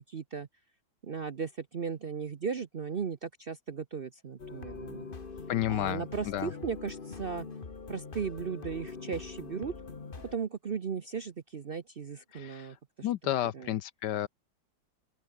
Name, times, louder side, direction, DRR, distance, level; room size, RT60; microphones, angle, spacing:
voice 1, 0.1-0.5 1.0-5.1 5.7-7.5 7.9-9.7 10.2-13.7, right 6 dB, 60° right, 0.5 m, -37 dB
sound 1, 4.4-10.4, left 4 dB, 30° left, 1.5 m, -43 dB
voice 2, 5.5-6.0 6.3-6.5 12.3-12.7 13.0-14.3, left 12 dB, 70° left, 1.2 m, -31 dB
open air
omnidirectional pair, 2.2 m